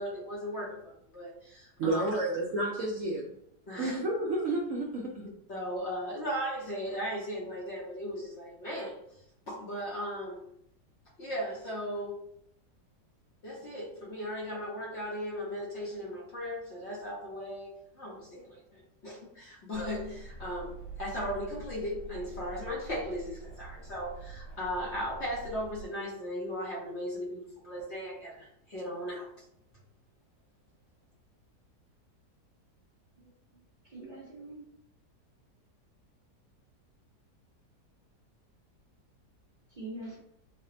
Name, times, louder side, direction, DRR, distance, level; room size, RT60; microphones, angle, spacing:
voice 1, 0.0-2.4 3.7-4.0 5.5-9.0 9.5-10.5 11.2-12.2 13.4-29.3, equal, 50° left, -4 dB, 0.9 m, -37 dB
voice 2, 1.8-3.3 3.8-5.3, right 2 dB, 70° right, -2 dB, 0.8 m, -31 dB
sound 1, 19.7-25.9, right 4 dB, 75° left, 1.5 m, -46 dB
voice 3, 33.2-34.6 39.7-40.2, right 2 dB, 40° right, -6 dB, 0.7 m, -45 dB
3.3 x 2.1 x 3.7 m, 0.73 s
omnidirectional pair, 1.7 m